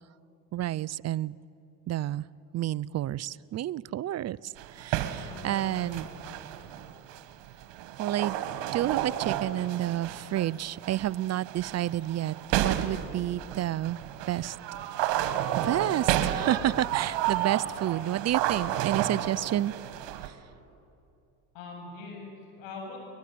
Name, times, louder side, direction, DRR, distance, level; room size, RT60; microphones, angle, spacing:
voice 1, 0.5-1.4 1.9-2.3 2.5-6.1 8.0-8.4 8.7-14.0 14.3-14.6 15.6-19.7 20.2-20.3, right 13 dB, 35° right, 21 dB, 0.5 m, -30 dB
sound 1, 4.6-20.3, right 12 dB, 75° right, 1.8 m, -32 dB
voice 2, 5.3-6.5 15.8-16.0 21.5-23.0, left 3 dB, 75° left, 1 dB, 7.8 m, -43 dB
23.0 x 21.0 x 9.5 m, 2.6 s
supercardioid pair, 85°, 44 cm